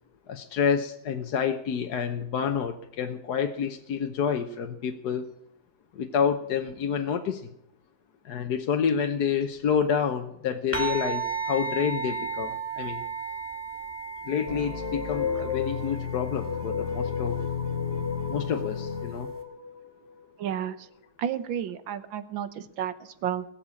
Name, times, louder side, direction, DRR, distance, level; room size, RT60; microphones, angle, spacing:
voice 1, 0.3-5.3 5.9-7.4 8.2-13.0 14.3-17.4 18.3-19.3, left 7 dB, 60° left, 5 dB, 1.4 m, -28 dB
sound 1, 10.7-19.4, right 5 dB, 5° left, 2.5 m, -36 dB
sound 2, 14.5-20.6, left 6 dB, 35° left, 1.5 m, -32 dB
voice 2, 20.4-20.9 21.2-23.5, right 9 dB, 75° right, 13 dB, 1.7 m, -32 dB
20.0 x 7.4 x 8.5 m, 0.76 s
omnidirectional pair, 2.1 m